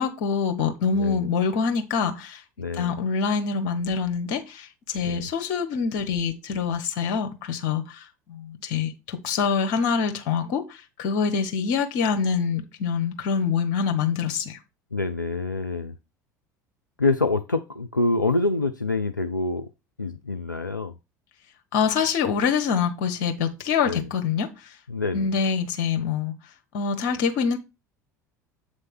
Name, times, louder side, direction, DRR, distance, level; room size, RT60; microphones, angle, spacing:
voice 1, 0.0-2.4 2.7-14.6 21.7-24.8 25.1-26.3 26.7-27.6, left 6 dB, 55° left, 1.3 m, -25 dB
voice 2, 0.9-1.3 2.6-3.0 5.0-5.3 14.9-15.9 17.0-19.7 20.0-20.9 23.9-24.1 24.9-25.3, left 3 dB, 90° left, 0.4 m, -26 dB
8.0 x 3.2 x 6.0 m
figure-of-eight pair, 65°, 10 cm